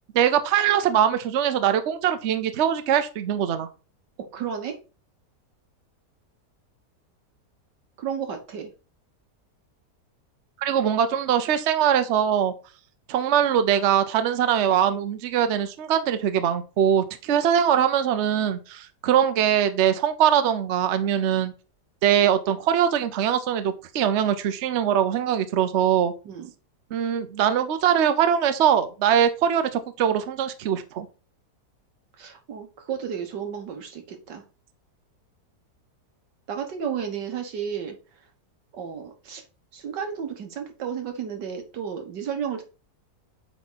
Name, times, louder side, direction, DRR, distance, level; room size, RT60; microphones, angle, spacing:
voice 1, 0.1-3.7 10.6-12.5 13.1-21.5 22.0-26.1 26.9-31.1, right 9 dB, 55° right, 9 dB, 0.8 m, -22 dB
voice 2, 4.3-4.8 8.0-8.7 26.3-26.5 32.2-34.4 36.5-38.0 38.7-39.4 39.7-42.6, right 7 dB, 90° right, 5 dB, 1.8 m, -32 dB
8.3 x 3.6 x 3.9 m, 0.33 s
omnidirectional pair, 1.8 m